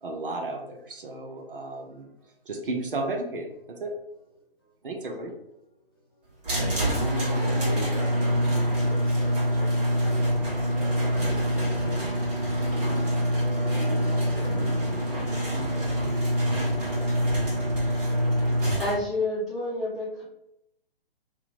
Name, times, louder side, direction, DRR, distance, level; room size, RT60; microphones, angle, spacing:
voice 1, 0.0-2.1 2.5-3.9 4.8-5.3, right 2 dB, 60° right, 2 dB, 0.8 m, -33 dB
sound 1, 6.4-18.9, equal, 40° right, 1.5 m, -25 dB
voice 2, 6.6-12.2 12.9-13.4 14.1-14.7, equal, 25° left, -3 dB, 0.4 m, -39 dB
voice 3, 18.8-20.2, left 2 dB, ahead, -12 dB, 1.4 m, -29 dB
2.8 x 2.7 x 4.0 m, 0.83 s
figure-of-eight pair, 130°, 30 cm